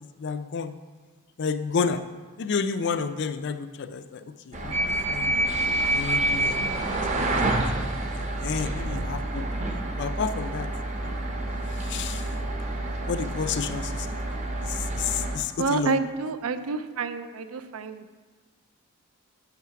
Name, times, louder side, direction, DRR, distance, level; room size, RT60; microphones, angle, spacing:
voice 1, 0.2-0.7 1.4-2.0 2.4-5.3 5.9-6.7 7.2-7.5 8.2-9.4 10.0-10.7 11.0-11.1 11.7-12.3 13.1-14.2 14.6-16.0, left 5 dB, 55° left, 11 dB, 0.4 m, -30 dB
sound 1, 4.5-15.4, right 1 dB, 35° right, 0.7 m, -28 dB
voice 2, 15.6-18.1, right 4 dB, 80° right, 11 dB, 0.5 m, -28 dB
6.6 x 5.9 x 5.8 m, 1.4 s
head